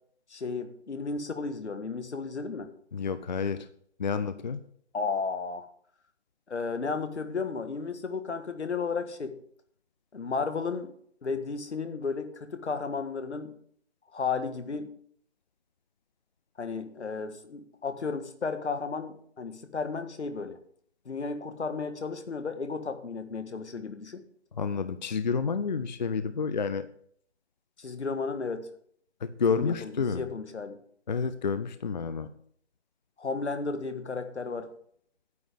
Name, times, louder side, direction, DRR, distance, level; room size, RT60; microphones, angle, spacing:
voice 1, 0.3-2.7 4.9-5.7 6.5-9.3 10.1-10.9 11.2-13.5 14.1-14.9 16.6-20.6 21.0-24.2 27.8-28.7 29.5-30.8 33.2-34.7, left 4 dB, 75° left, 8 dB, 1.6 m, -33 dB
voice 2, 2.9-3.7 4.0-4.6 24.6-26.9 29.2-30.2 31.1-32.3, left 5 dB, 40° left, 12 dB, 0.5 m, -29 dB
9.3 x 8.3 x 5.0 m, 0.64 s
figure-of-eight pair, 160°, 34 cm